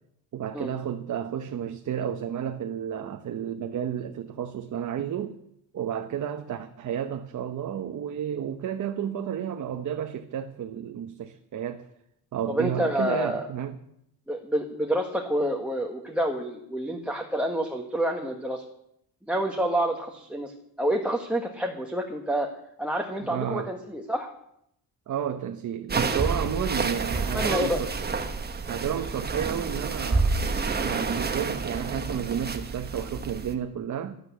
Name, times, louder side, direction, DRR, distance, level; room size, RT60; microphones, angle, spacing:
voice 1, 0.3-5.4 5.7-11.9 12.3-13.8 23.2-23.7 25.1-27.9 28.7-34.2, right 9 dB, 45° right, 1.0 m, -32 dB
voice 2, 12.5-13.4 14.3-18.6 19.3-20.5 20.8-22.5 22.8-24.3 26.6-26.7 27.3-27.8, right 1 dB, 5° right, 1.4 m, -28 dB
sound 1, 25.9-33.5, right 4 dB, 25° right, 1.3 m, -29 dB
12.5 x 12.0 x 8.3 m
cardioid pair, 145°, 40 cm